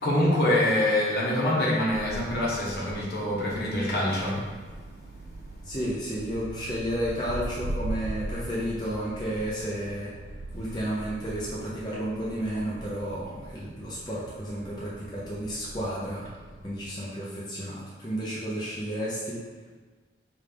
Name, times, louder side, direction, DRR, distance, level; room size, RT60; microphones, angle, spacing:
voice 1, 0.0-4.4, left 1 dB, 60° left, -5 dB, 1.1 m, -25 dB
sound 1, 1.9-16.8, right 1 dB, 80° right, 0.3 m, -41 dB
voice 2, 5.6-10.1 10.5-16.3 16.6-19.4, equal, 25° left, -7 dB, 0.6 m, -32 dB
4.9 x 2.4 x 3.4 m, 1.4 s
head